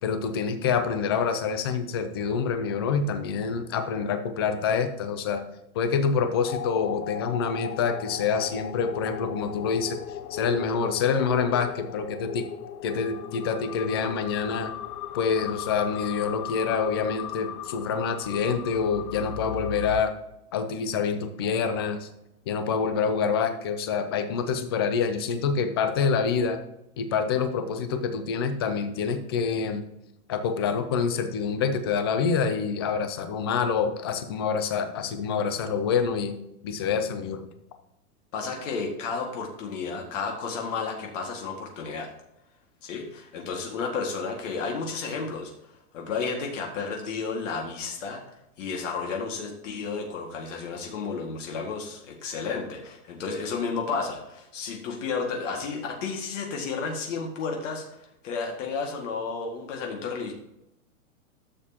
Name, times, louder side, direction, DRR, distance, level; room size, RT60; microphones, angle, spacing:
voice 1, 0.0-5.4 5.7-12.4 12.8-14.7 15.1-20.1 20.5-22.1 22.5-26.6 27.0-29.8 30.3-36.3 36.6-37.4, left 6 dB, 20° left, 8 dB, 0.3 m, -26 dB
sound 1, 6.5-20.0, left 10 dB, 85° left, 0.7 m, -37 dB
voice 2, 38.3-42.1 42.8-45.5 45.9-48.2 48.6-60.3, left 4 dB, 55° left, 1 dB, 2.0 m, -32 dB
12.5 x 7.3 x 2.9 m, 0.86 s
supercardioid pair, 155°, 43 cm